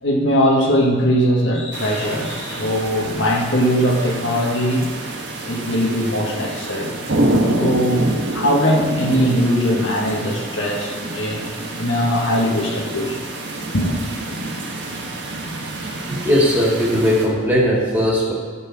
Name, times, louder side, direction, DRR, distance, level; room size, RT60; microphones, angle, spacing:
voice 1, 0.0-4.8 5.4-7.0 7.6-11.4 11.8-13.2 13.7-14.0, equal, 75° left, -1 dB, 1.3 m, -20 dB
sound 1, 1.7-17.3, right 1 dB, 70° right, 1.3 m, -27 dB
voice 2, 16.1-18.3, equal, 10° right, -5 dB, 1.9 m, -18 dB
11.5 x 4.1 x 6.0 m, 1.5 s
head